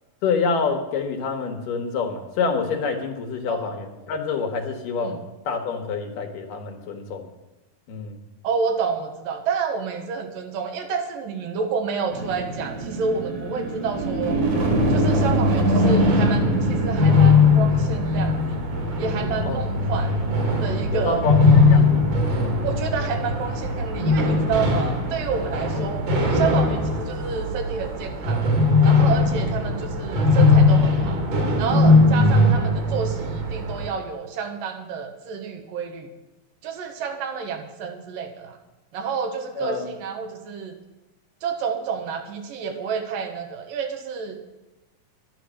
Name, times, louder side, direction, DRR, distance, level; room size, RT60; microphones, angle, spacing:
voice 1, 0.2-5.2 5.5-7.3 7.9-8.2 19.4-19.6 20.9-22.1 25.8-25.9 39.6-39.9, left 5 dB, 75° left, 4 dB, 2.9 m, -27 dB
voice 2, 8.4-14.4 14.9-18.6 19.0-20.1 20.6-21.2 21.7-21.9 22.6-28.5 28.8-31.2 31.6-36.1 36.6-38.6 38.9-40.8 41.4-44.4, right 6 dB, 80° right, 5 dB, 2.9 m, -29 dB
sound 1, 12.1-26.1, right 1 dB, 45° right, 2.4 m, -26 dB
sound 2, 14.6-33.9, left 3 dB, 65° right, 3.7 m, -20 dB
11.0 x 10.0 x 6.3 m, 1.0 s
omnidirectional pair, 4.0 m